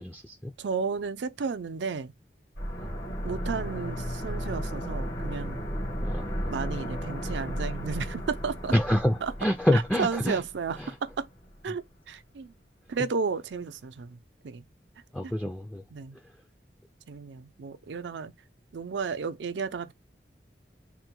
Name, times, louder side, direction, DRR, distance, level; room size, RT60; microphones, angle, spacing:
voice 1, 0.0-0.5 2.8-3.0 6.0-6.4 8.7-10.4 15.1-15.8, equal, 5° left, 0.3 m, -27 dB
voice 2, 0.6-2.1 3.2-5.7 6.5-8.7 9.2-9.3 9.7-11.3 11.6-12.5 12.9-14.2 14.4-14.6 15.2-15.3 15.9-16.2 17.1-18.3 18.7-19.9, right 5 dB, 90° right, 0.5 m, -33 dB
sound 1, 2.6-11.3 11.5-11.6, equal, 70° left, 1.8 m, -34 dB
3.8 x 2.1 x 4.5 m
head